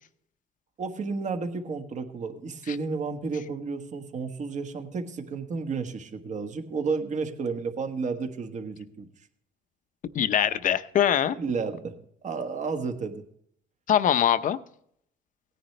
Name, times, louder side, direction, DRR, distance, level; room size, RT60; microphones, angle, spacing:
voice 1, 0.8-9.1 11.4-11.9 12.2-13.2, right 4 dB, 45° right, 6 dB, 1.4 m, -32 dB
voice 2, 10.1-11.4 13.9-14.6, left 10 dB, 50° left, 12 dB, 0.7 m, -23 dB
17.5 x 10.0 x 3.2 m, 0.69 s
cardioid pair, 110°, 17 cm